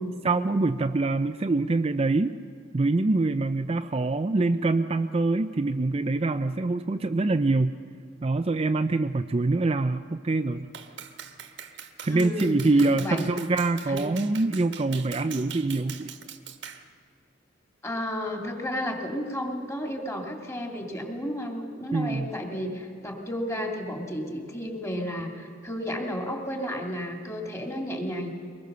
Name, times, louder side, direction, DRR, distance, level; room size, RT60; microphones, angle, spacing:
voice 1, 0.2-2.4 2.7-7.8 8.2-10.7 12.0-16.2 21.9-22.3, right 3 dB, 30° right, 8 dB, 0.5 m, -25 dB
Clapping, 10.7-16.9, right 8 dB, 65° right, 1.4 m, -42 dB
voice 2, 12.1-12.6 13.0-13.3 13.9-14.1 17.8-28.3, equal, 15° left, 2 dB, 2.6 m, -32 dB
23.5 x 20.0 x 6.8 m, 2.2 s
head